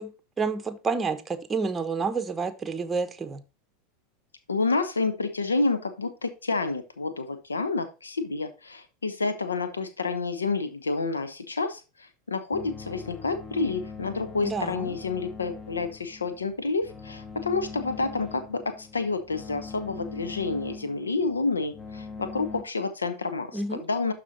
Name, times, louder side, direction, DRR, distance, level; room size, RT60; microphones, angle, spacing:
voice 1, 0.0-3.4 14.4-15.0 23.5-23.8, right 4 dB, 15° right, 0.8 m, -29 dB
voice 2, 4.5-24.1, left 3 dB, 75° left, 0.9 m, -29 dB
sound 1, 12.5-22.6, left 4 dB, 25° left, 1.0 m, -42 dB
12.0 x 4.2 x 2.8 m
figure-of-eight pair, 85°, 0 cm